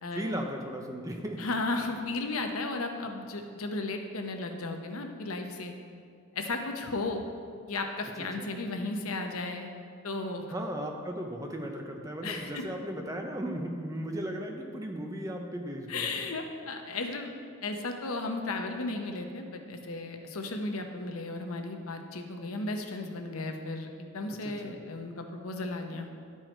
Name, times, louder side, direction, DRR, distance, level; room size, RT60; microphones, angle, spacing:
voice 1, 0.1-1.5 8.2-8.5 10.5-16.1 24.4-24.8, equal, 15° right, 2 dB, 0.6 m, -36 dB
voice 2, 1.4-5.7 6.3-7.2 7.7-9.7 10.0-10.4 12.2-12.6 15.9-17.3 17.6-26.1, left 2 dB, 90° left, 4 dB, 0.8 m, -35 dB
11.5 x 4.7 x 4.4 m, 2.2 s
head